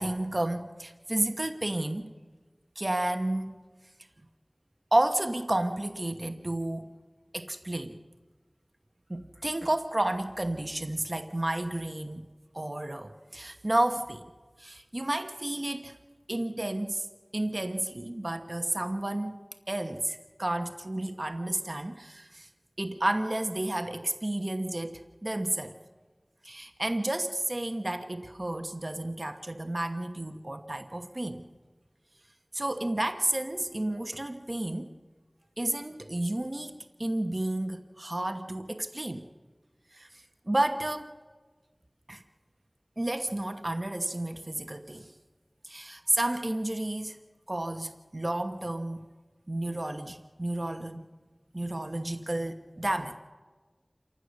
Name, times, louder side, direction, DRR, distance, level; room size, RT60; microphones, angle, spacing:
voice 1, 0.0-2.1 2.8-3.5 4.9-6.9 7.3-8.0 9.1-12.3 12.5-14.3 14.6-16.0 16.3-17.1 17.3-19.4 19.7-22.5 22.8-25.8 26.4-31.5 32.5-34.9 35.6-36.7 37.0-39.3 39.9-40.1 40.5-41.1 42.1-42.2 43.0-45.1 45.6-47.2 47.5-49.0 49.5-51.0 51.5-53.2, right 1 dB, 50° right, 7 dB, 1.0 m, -31 dB
28.5 x 14.5 x 6.5 m, 1.3 s
wide cardioid pair, 40°, 0 cm